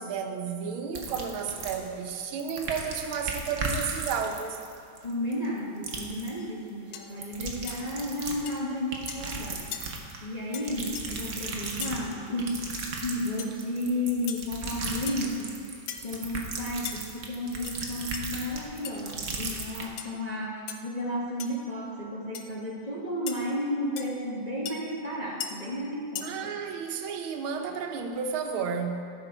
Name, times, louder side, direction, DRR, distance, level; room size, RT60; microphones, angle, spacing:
voice 1, 0.0-4.6 26.2-29.0, right 6 dB, 85° right, 1.6 m, -32 dB
sound 1, 0.9-2.1 2.4-5.6 5.8-6.3 7.1-8.6 8.9-10.2 10.6-19.8, right 3 dB, 50° right, 1.1 m, -36 dB
voice 2, 5.0-9.9 10.2-12.6 13.0-26.5, left 1 dB, 30° left, 0.8 m, -33 dB
sound 2, 6.4-6.5 6.9-7.1 7.7-7.8 8.5-8.6 9.1-9.3 9.7-9.8 10.5-10.7 11.0-11.1 11.8-12.0 13.4-13.5 14.3-14.4 15.1-15.3 15.9-16.1 16.9-17.0 17.5-17.8 18.1-18.2 18.8-18.9 20.0-20.1 20.7-20.8 21.4-21.6 22.3-22.4 23.3-23.4 24.0-24.1 24.7-24.8 25.4-25.5 26.2-26.3, left 9 dB, 85° left, 1.6 m, -37 dB
14.0 x 6.2 x 4.4 m
omnidirectional pair, 2.2 m